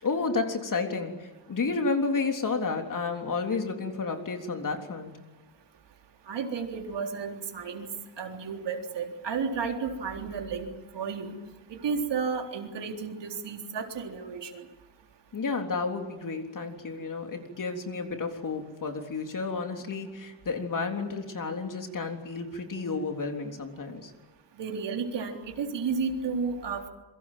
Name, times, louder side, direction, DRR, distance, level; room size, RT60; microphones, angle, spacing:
voice 1, 0.0-5.1 15.3-24.1, left 4 dB, 50° left, 4 dB, 3.6 m, -31 dB
voice 2, 6.3-7.9 8.2-11.3 11.7-14.6 24.6-26.9, right 5 dB, 90° right, 3 dB, 3.9 m, -32 dB
27.0 x 23.0 x 7.6 m, 1.1 s
wide cardioid pair, 130°, 41 cm